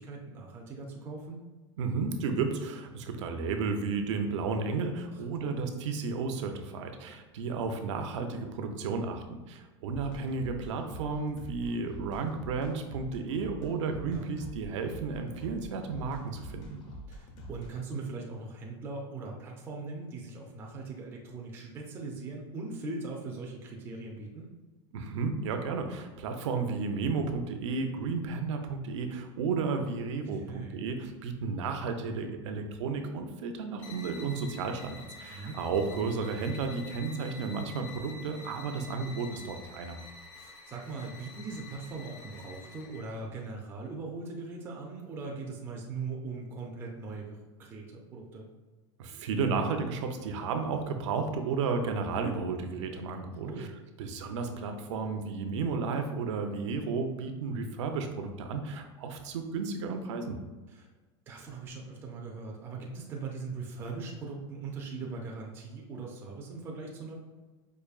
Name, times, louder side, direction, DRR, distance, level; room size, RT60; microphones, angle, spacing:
voice 1, 0.0-1.4 5.1-5.5 14.1-14.3 17.1-24.5 30.3-30.9 35.3-35.6 40.4-48.5 53.4-53.7 60.7-60.9 61.3-67.1, right 3 dB, 15° right, -1 dB, 0.4 m, -40 dB
voice 2, 1.8-16.8 24.9-40.0 49.0-53.7 54.0-60.4, right 4 dB, 80° right, 5 dB, 0.5 m, -33 dB
sound 1, 9.9-17.7, equal, 30° left, 0.6 m, -45 dB
sound 2, 33.8-43.1, left 3 dB, 85° left, 0.9 m, -49 dB
4.8 x 2.6 x 2.3 m, 1.3 s
supercardioid pair, 165°, 15 cm